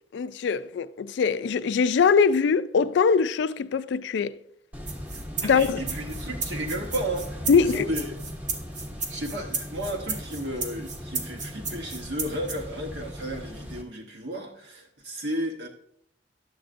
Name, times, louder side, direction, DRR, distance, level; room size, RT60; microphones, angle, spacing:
voice 1, 0.1-4.4 5.4-5.8 7.5-7.9, left 5 dB, 65° left, 0.3 m, -22 dB
sound 1, 4.7-13.8, equal, 10° right, 1.0 m, -38 dB
sound 2, 4.9-12.6, right 4 dB, 40° right, 0.9 m, -33 dB
voice 2, 5.1-8.1 9.1-15.7, equal, 65° right, 1.0 m, -33 dB
10.5 x 7.6 x 2.5 m
head